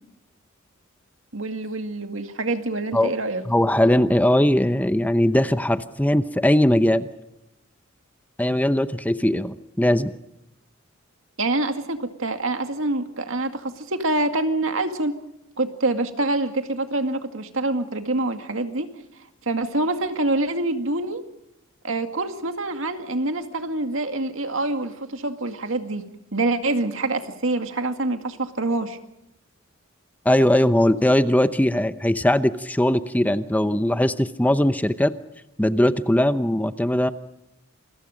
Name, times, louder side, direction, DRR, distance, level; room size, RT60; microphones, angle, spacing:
voice 1, 1.3-3.4 11.4-15.2 15.6-18.9 19.5-21.2 21.8-26.0 26.3-29.0, right 2 dB, 70° right, 7 dB, 2.2 m, -26 dB
voice 2, 3.5-7.1 8.4-10.1 30.2-35.1 35.6-37.1, left 1 dB, 10° left, 11 dB, 0.8 m, -20 dB
28.0 x 22.5 x 5.1 m, 0.87 s
head